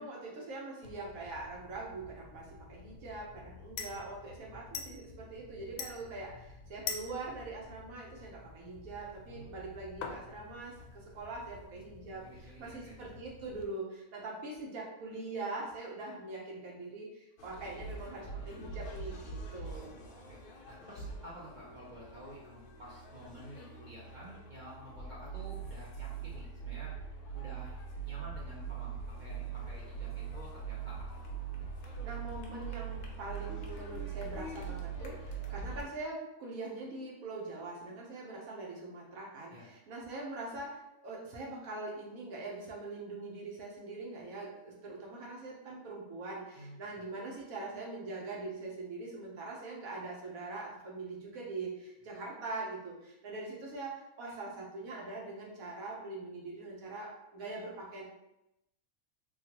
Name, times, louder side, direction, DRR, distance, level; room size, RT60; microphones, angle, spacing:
voice 1, 0.0-20.0 32.0-58.0, right 3 dB, 70° right, -3 dB, 1.3 m, -43 dB
sound 1, 0.8-13.6, left 5 dB, 90° left, 1.1 m, -47 dB
voice 2, 9.3-9.8 12.2-13.0 20.3-20.4 20.7-26.9 27.3-31.1 39.5-39.7 46.6-47.1, equal, 50° right, -6 dB, 0.5 m, -51 dB
sound 2, 17.4-35.8, right 5 dB, 70° left, 0.5 m, -42 dB
3.7 x 2.3 x 2.9 m, 0.87 s
omnidirectional pair, 1.5 m